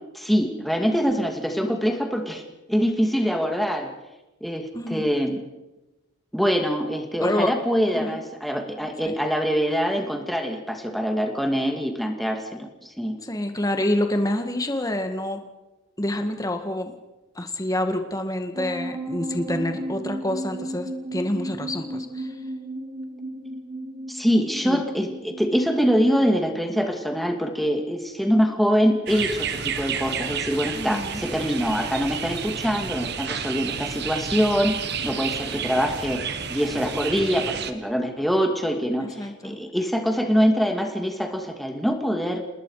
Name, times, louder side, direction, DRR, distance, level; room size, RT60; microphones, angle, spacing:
voice 1, 0.1-2.4 2.7-3.9 4.4-5.4 6.3-13.2 24.1-42.4, equal, ahead, 3 dB, 2.3 m, -24 dB
voice 2, 4.7-5.1 7.2-7.5 7.9-8.2 9.0-9.2 13.2-15.4 16.0-16.9 17.4-22.4 24.6-24.8 30.7-31.2 39.0-39.6, left 1 dB, 20° left, 6 dB, 1.9 m, -27 dB
sound 1, 18.5-26.0, right 1 dB, 25° right, 2.9 m, -34 dB
sound 2, 29.1-37.7, right 6 dB, 55° right, 1.4 m, -31 dB
28.0 x 19.5 x 4.9 m, 1.0 s
head